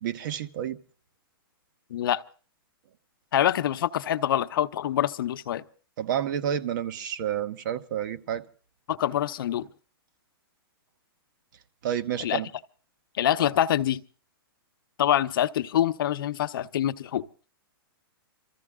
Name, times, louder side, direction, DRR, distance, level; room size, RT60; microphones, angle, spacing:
voice 1, 0.0-0.8 6.0-8.4 11.8-12.5, right 9 dB, 55° right, 1.1 m, -30 dB
voice 2, 1.9-2.2 3.3-5.6 8.9-9.7 12.2-12.4 13.2-14.0 15.0-17.2, left 11 dB, 65° left, 0.8 m, -25 dB
24.5 x 14.5 x 3.7 m
hypercardioid pair, 145°, 13 cm